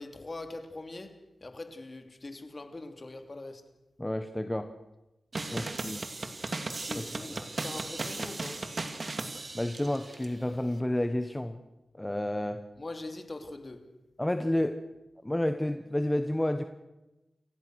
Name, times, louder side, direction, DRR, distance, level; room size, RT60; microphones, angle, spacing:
voice 1, 0.0-3.7 5.4-5.8 6.8-7.4 7.6-8.7 12.8-13.9, left 2 dB, 35° left, 2.7 m, -42 dB
voice 2, 4.0-4.7 5.5-6.1 6.9-7.5 9.5-11.6 12.0-12.6 14.2-14.8 15.2-16.6, left 1 dB, 15° left, 1.2 m, -30 dB
sound 1, 5.3-10.3, right 3 dB, 45° right, 2.4 m, -36 dB
29.0 x 15.5 x 6.5 m
cardioid pair, 65°, 0 cm